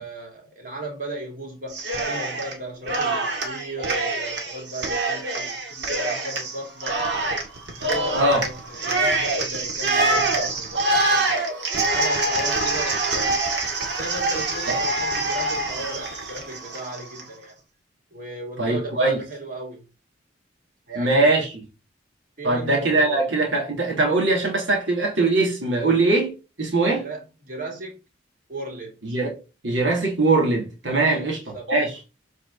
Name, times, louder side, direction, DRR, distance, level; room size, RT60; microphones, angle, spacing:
voice 1, 0.0-7.0 7.8-11.4 11.9-13.4 14.0-17.6 18.1-19.8 20.9-21.4 22.4-23.3 26.9-28.0 28.5-29.0 31.0-31.7, right 2 dB, 45° right, 3.0 m, -36 dB
Cheering, 1.7-2.6 2.9-17.2, right 2 dB, 65° right, 2.1 m, -25 dB
voice 2, 18.6-19.2 21.0-21.5 22.4-27.1 29.0-29.4 29.6-31.4 31.7-32.0, right 2 dB, 85° right, 2.9 m, -21 dB
7.7 x 4.8 x 4.1 m
head